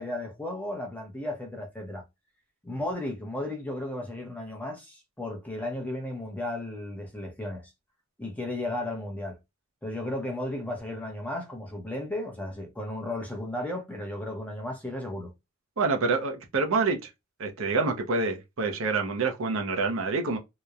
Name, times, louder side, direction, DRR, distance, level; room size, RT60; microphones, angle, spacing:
voice 1, 0.0-2.0 2.6-7.7 8.2-9.4 9.8-15.3, left 1 dB, 5° left, 0.7 m, -34 dB
voice 2, 15.8-17.1 17.4-20.4, right 4 dB, 70° right, 0.6 m, -27 dB
2.9 x 2.1 x 2.3 m
head